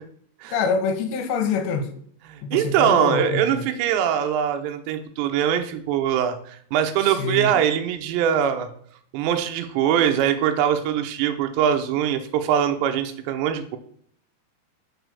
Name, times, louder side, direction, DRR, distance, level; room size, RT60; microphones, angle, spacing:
voice 1, 0.5-1.9 2.4-3.7 7.0-7.5, left 5 dB, 80° left, 2.9 m, -25 dB
voice 2, 2.3-8.7 9.1-13.8, right 9 dB, 85° right, 2.8 m, -22 dB
6.2 x 4.7 x 6.6 m
omnidirectional pair, 5.2 m